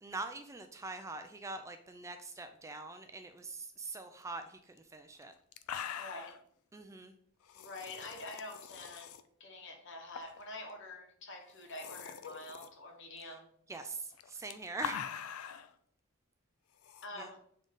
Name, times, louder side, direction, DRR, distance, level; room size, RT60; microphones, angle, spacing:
voice 1, 0.0-5.3 6.7-7.1 13.7-15.0 17.2-17.3, right 3 dB, 15° right, 7 dB, 0.3 m, -43 dB
sound 1, 4.8-4.9 5.2-5.3 5.5-6.4 7.5-9.2 10.1-10.4 10.7-10.8 11.5-12.7 14.1-15.7 16.8-17.0, left 8 dB, 80° left, 0.4 m, -43 dB
voice 2, 6.0-6.4 7.5-13.5 17.0-17.4, left 2 dB, 55° left, 3 dB, 1.2 m, -46 dB
7.1 x 3.8 x 3.8 m, 0.64 s
head